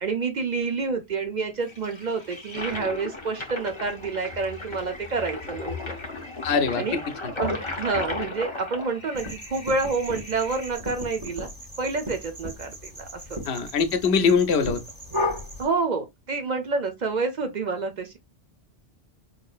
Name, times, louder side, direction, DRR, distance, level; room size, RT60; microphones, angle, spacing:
voice 1, 0.0-6.0 6.8-7.0 7.3-11.5 11.8-13.4 15.6-18.2, right 4 dB, 50° right, 0.7 m, -28 dB
Toilet flush, 1.6-10.7, left 2 dB, 30° left, 0.7 m, -35 dB
voice 2, 6.4-6.8 7.2-7.3 13.5-14.8, left 5 dB, 75° left, 0.9 m, -22 dB
sound 1, 9.1-15.6, left 1 dB, 20° right, 1.4 m, -35 dB
4.8 x 2.6 x 2.3 m
omnidirectional pair, 1.1 m